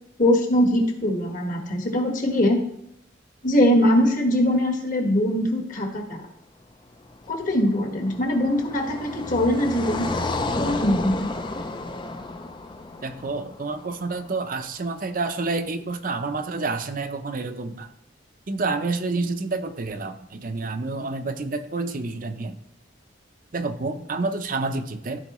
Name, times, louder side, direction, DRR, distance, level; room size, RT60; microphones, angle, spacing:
voice 1, 0.2-2.6 3.4-6.3 7.3-10.1 10.6-11.3, left 1 dB, 45° left, 2 dB, 1.5 m, -22 dB
Car passing by, 7.1-14.4, left 2 dB, 25° left, 0.5 m, -32 dB
voice 2, 13.0-17.9 18.5-22.6 23.5-25.2, right 3 dB, 45° right, 8 dB, 0.7 m, -29 dB
14.0 x 4.9 x 3.1 m, 0.78 s
head